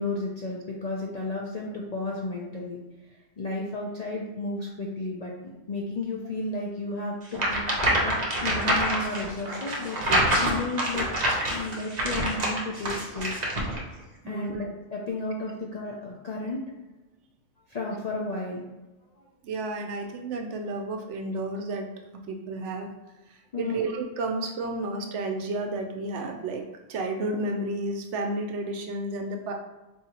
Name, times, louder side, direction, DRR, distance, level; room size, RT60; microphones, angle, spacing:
voice 1, 0.0-2.8 3.4-5.3 5.7-7.6 8.0-10.0 10.4-11.1 11.5-13.7 14.2-16.6 17.7-18.7 19.2-19.3 23.5-23.8, left 2 dB, 55° left, -3 dB, 0.4 m, -33 dB
sound 1, 7.3-13.8, right 1 dB, 40° right, 0.8 m, -26 dB
voice 2, 14.2-14.6 19.4-22.9 23.3-26.6 26.9-29.5, right 2 dB, 75° right, 3 dB, 0.9 m, -32 dB
4.7 x 2.6 x 2.8 m, 1.1 s
omnidirectional pair, 1.2 m